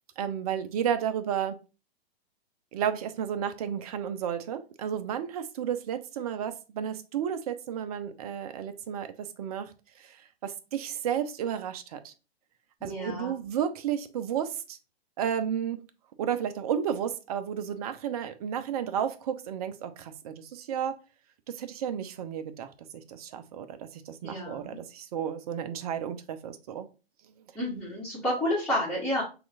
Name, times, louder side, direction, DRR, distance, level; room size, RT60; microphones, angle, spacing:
voice 1, 0.2-1.5 2.7-12.1 12.8-14.8 15.2-15.8 16.2-20.9 21.5-22.7 22.9-26.9, right 9 dB, 40° right, 10 dB, 0.5 m, -32 dB
voice 2, 12.8-13.4 24.2-24.8 27.5-29.2, left 1 dB, 5° left, -8 dB, 1.4 m, -30 dB
5.9 x 2.4 x 2.4 m, 0.31 s
figure-of-eight pair, 120°, 31 cm